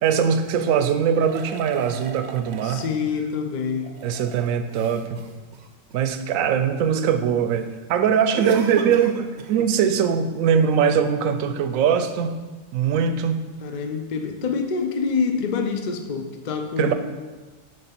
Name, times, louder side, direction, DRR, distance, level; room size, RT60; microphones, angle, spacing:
voice 1, 0.0-2.8 4.0-5.2 5.9-12.4 12.7-13.4 16.8-16.9, right 7 dB, 85° right, 9 dB, 1.0 m, -21 dB
sound 1, 1.2-3.0 3.7-6.3 8.3-9.7, right 5 dB, 60° right, 0.8 m, -36 dB
voice 2, 2.6-3.9 13.6-16.9, left 5 dB, 55° left, 5 dB, 0.5 m, -26 dB
6.6 x 3.4 x 5.8 m, 1.3 s
omnidirectional pair, 1.3 m